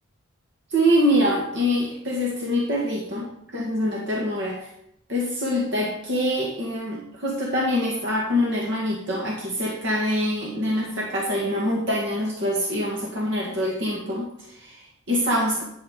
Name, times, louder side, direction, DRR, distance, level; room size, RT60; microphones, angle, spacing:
voice 1, 0.7-3.3 3.5-4.7 5.1-15.6, equal, 60° right, -3 dB, 2.0 m, -25 dB
11.5 x 4.9 x 6.7 m, 0.76 s
head